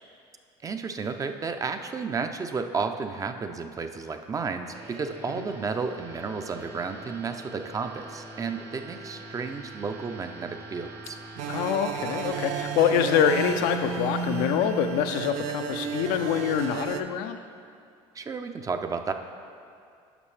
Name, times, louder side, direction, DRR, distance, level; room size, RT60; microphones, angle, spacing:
voice 1, 0.6-11.2 18.1-19.1, right 5 dB, 25° right, 7 dB, 0.5 m, -32 dB
sound 1, 4.6-16.9, right 2 dB, 90° right, 1.7 m, -44 dB
sound 2, 11.3-17.0, right 6 dB, 70° right, 0.5 m, -33 dB
voice 2, 11.5-17.4, left 8 dB, 75° left, 7 dB, 0.5 m, -25 dB
11.0 x 6.1 x 3.3 m, 2.4 s
supercardioid pair, 95°, 13 cm